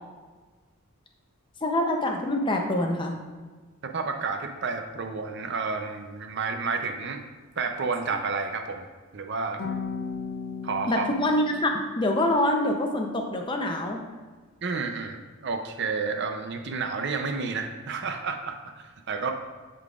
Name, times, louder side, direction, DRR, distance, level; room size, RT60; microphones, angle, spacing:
voice 1, 1.6-3.2 10.9-14.0, left 1 dB, 20° left, 2 dB, 0.6 m, -25 dB
voice 2, 3.8-7.2 7.6-8.9 9.1-9.6 10.6-11.1 14.6-19.3, right 4 dB, 50° right, 5 dB, 0.6 m, -30 dB
sound 1, 7.7-8.2 9.6-11.6, left 5 dB, 65° left, 0.6 m, -35 dB
11.0 x 3.9 x 2.4 m, 1.4 s
head